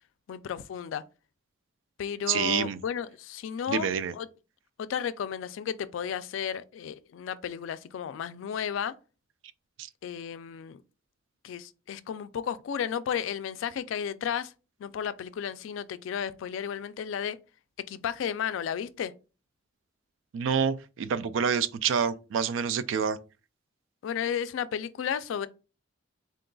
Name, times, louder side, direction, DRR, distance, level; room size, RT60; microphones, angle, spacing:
voice 1, 0.3-1.0 2.0-4.3 4.8-8.9 10.0-10.8 11.4-14.5 14.8-17.4 17.9-19.1 24.0-25.5, left 8 dB, 85° left, 0.3 m, -33 dB
voice 2, 2.3-2.8 3.7-4.1 9.8-9.9 20.3-23.2, right 7 dB, 80° right, 0.3 m, -27 dB
3.8 x 2.2 x 3.7 m
head